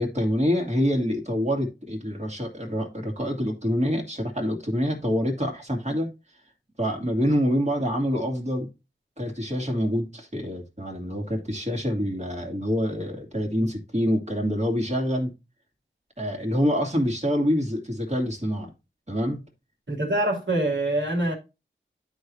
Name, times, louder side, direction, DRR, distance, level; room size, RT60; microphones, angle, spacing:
voice 1, 0.0-6.1 6.8-8.7 9.2-15.3 16.2-18.7 19.1-19.4, equal, 35° right, 2.6 m, -26 dB
voice 2, 19.9-21.3, right 1 dB, 65° right, 3.1 m, -24 dB
12.5 x 4.8 x 2.8 m
wide cardioid pair, 55°, 21 cm